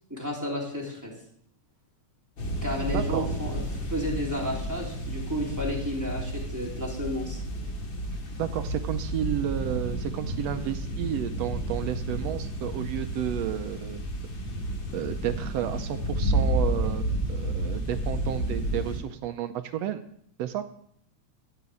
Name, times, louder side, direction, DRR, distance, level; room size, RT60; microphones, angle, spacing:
voice 1, 0.1-1.1 2.6-3.6 3.9-7.4, equal, 5° right, -2 dB, 3.1 m, -32 dB
sound 1, 2.4-19.0, right 1 dB, 45° left, 2.8 m, -31 dB
voice 2, 2.9-3.3 8.4-14.0 14.9-20.0 20.4-20.6, right 11 dB, 75° right, 9 dB, 1.7 m, -32 dB
14.5 x 6.8 x 8.5 m, 0.68 s
omnidirectional pair, 3.4 m